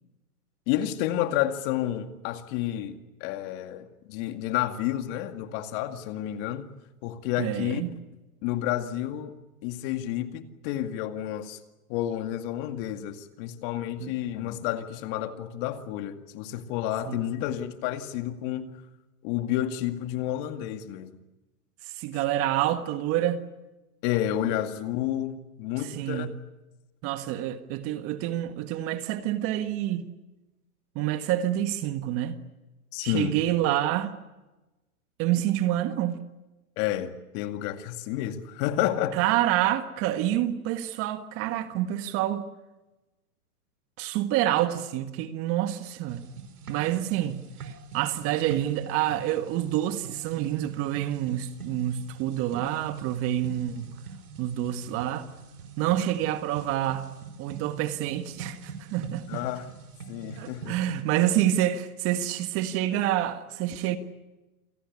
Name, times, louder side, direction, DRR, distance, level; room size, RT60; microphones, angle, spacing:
voice 1, 0.7-6.7 7.0-7.8 8.4-9.3 9.6-11.6 11.9-18.7 19.2-21.1 24.0-26.3 32.9-33.4 36.8-39.2 59.3-59.8 60.1-60.8, left 12 dB, 35° left, 2.2 m, -30 dB
voice 2, 7.4-7.9 14.0-14.2 17.1-17.2 21.9-23.4 25.8-26.3 27.0-30.1 31.0-32.4 33.0-34.1 35.2-36.2 39.1-42.5 44.0-46.2 46.7-47.4 47.6-53.9 54.4-55.3 55.8-57.1 57.4-59.4 60.4-64.0, right 12 dB, 30° right, 1.6 m, -27 dB
sound 1, 46.1-61.0, right 5 dB, 80° right, 4.9 m, -44 dB
28.5 x 18.0 x 9.8 m
hypercardioid pair, 140°, 44 cm